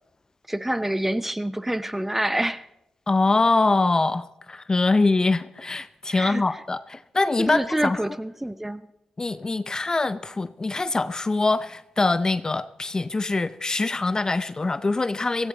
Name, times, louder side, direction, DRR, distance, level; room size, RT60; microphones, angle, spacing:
voice 1, 0.5-2.7 6.1-6.4 7.5-8.8, right 1 dB, 10° right, 15 dB, 0.8 m, -27 dB
voice 2, 3.1-8.0 9.2-15.5, left 3 dB, 30° left, 14 dB, 0.6 m, -23 dB
16.5 x 14.5 x 4.0 m, 0.86 s
supercardioid pair, 45°, 2 cm